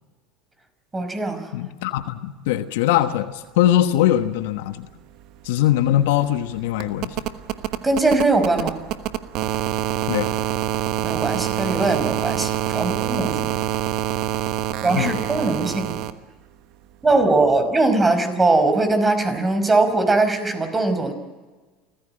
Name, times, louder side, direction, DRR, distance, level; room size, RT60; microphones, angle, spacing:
voice 1, 0.9-1.4 7.8-8.7 11.0-13.4 14.8-16.0 17.0-21.1, right 2 dB, 20° right, 8 dB, 5.2 m, -20 dB
voice 2, 1.5-4.9 5.4-7.2 10.1-10.3 14.9-15.1, left 13 dB, 75° left, 10 dB, 1.2 m, -21 dB
sound 1, 4.9-5.0 5.2-16.1 17.5-17.6, right 13 dB, 60° right, 1.2 m, -26 dB
28.0 x 15.5 x 7.7 m, 1.3 s
hypercardioid pair, 85°, 0 cm